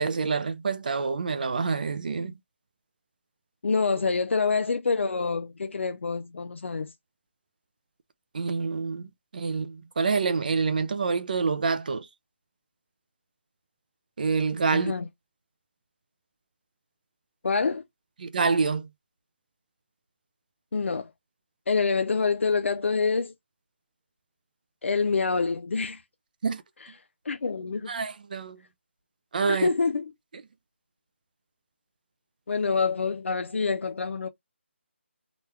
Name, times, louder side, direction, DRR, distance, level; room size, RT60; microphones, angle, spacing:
voice 1, 0.0-2.3 8.3-9.1 9.3-12.1 14.2-14.9 18.2-18.9 26.4-26.6 27.9-28.6 29.3-29.7, right 4 dB, 40° right, 0.4 m, -27 dB
voice 2, 3.6-6.9 14.7-15.1 17.4-17.8 20.7-21.1 21.7-23.3 24.8-26.0 27.3-27.9 29.5-30.1 32.5-34.3, left 4 dB, 75° left, 0.5 m, -26 dB
3.0 x 2.3 x 3.2 m
hypercardioid pair, 170°, 7 cm